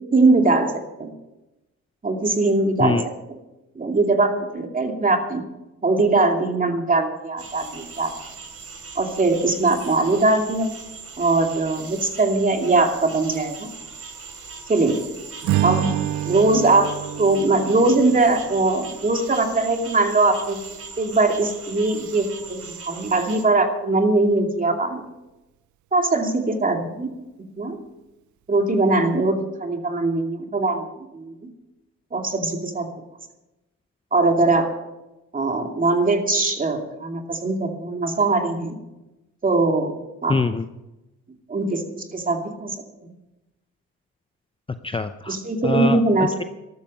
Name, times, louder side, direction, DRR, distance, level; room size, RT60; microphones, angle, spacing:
voice 1, 0.1-0.7 1.0-1.1 2.0-3.0 3.3-3.4 3.8-5.4 5.8-8.1 9.0-10.7 11.2-13.7 14.7-15.0 15.6-16.0 16.3-16.9 17.2-20.6 21.0-25.0 25.9-27.1 27.6-27.8 28.5-30.8 31.1-31.4 32.1-32.9 34.1-34.7 35.3-38.8 39.4-40.0 40.2-40.4 41.5-42.7 43.0-43.1 45.3-46.3, right 3 dB, 30° right, 3 dB, 2.6 m, -21 dB
sound 1, 7.4-23.4, right 4 dB, 50° right, 2.9 m, -40 dB
Strum, 15.4-19.9, right 13 dB, 75° right, 0.5 m, -28 dB
voice 2, 40.3-40.7 44.8-45.4 45.6-46.4, left 4 dB, 20° left, 9 dB, 0.6 m, -24 dB
13.5 x 13.0 x 5.5 m, 0.99 s
cardioid pair, 90°, 30 cm